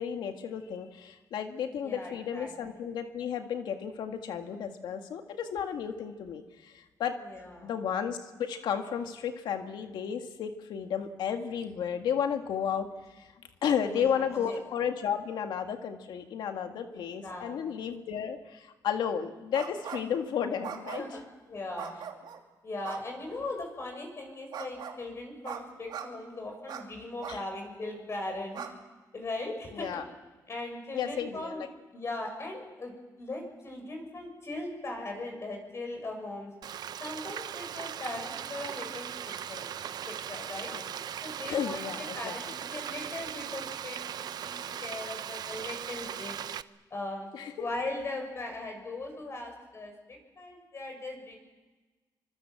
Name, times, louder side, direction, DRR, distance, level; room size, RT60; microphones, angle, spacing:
voice 1, 0.0-7.2 7.6-13.3 13.6-21.0 27.3-27.4 29.7-30.0 30.9-31.7 40.7-40.8 41.5-42.3 47.3-47.5, left 8 dB, 90° left, 6 dB, 1.9 m, -33 dB
voice 2, 1.8-2.5 7.2-7.7 13.8-14.6 16.9-17.9 20.9-21.2 21.5-22.0 22.6-28.6 29.1-30.0 30.5-31.6 31.9-36.5 37.0-39.7 40.1-40.7 41.2-46.4 46.9-47.3 47.6-51.4, left 2 dB, 40° left, 3 dB, 7.0 m, -39 dB
sound 1, 19.5-20.2 20.6-21.2 21.8-22.4 22.8-23.0 24.5-25.0 25.4-25.6 25.9-26.1 26.7-26.8 27.2-27.4 27.9-28.0 28.5-28.7, right 8 dB, 85° right, 2.7 m, -40 dB
Frying (food), 36.6-46.6, right 9 dB, 65° right, 0.7 m, -39 dB
25.0 x 24.0 x 7.6 m, 1.2 s
cardioid pair, 115°, 7 cm